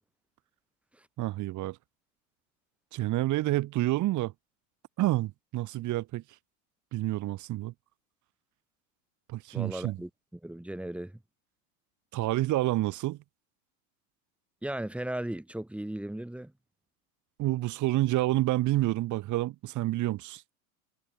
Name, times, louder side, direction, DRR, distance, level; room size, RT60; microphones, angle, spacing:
voice 1, 1.2-1.8 2.9-4.3 5.0-6.2 6.9-7.7 9.3-10.0 12.1-13.2 17.4-20.4, right 16 dB, 40° right, 5.3 m, -28 dB
voice 2, 9.5-10.1 10.4-11.1 14.6-16.5, right 1 dB, 5° right, 5.7 m, -36 dB
supercardioid pair, 140°, 44 cm